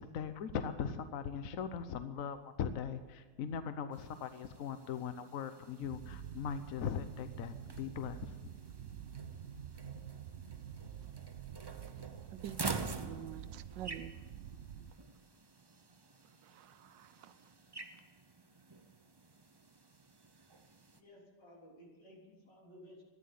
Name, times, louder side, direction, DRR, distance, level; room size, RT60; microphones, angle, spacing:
voice 1, 0.0-8.4, left 7 dB, 60° left, 10 dB, 1.1 m, -40 dB
sound 1, 3.9-21.0, right 3 dB, 40° right, 0.3 m, -48 dB
sound 2, 5.8-14.9, right 9 dB, 60° right, 0.8 m, -48 dB
voice 2, 12.3-14.2 16.4-17.4, right 10 dB, 90° right, 13 dB, 1.4 m, -47 dB
voice 3, 21.0-23.0, equal, 75° left, -3 dB, 4.4 m, -57 dB
14.0 x 10.5 x 9.5 m, 1.4 s
omnidirectional pair, 1.9 m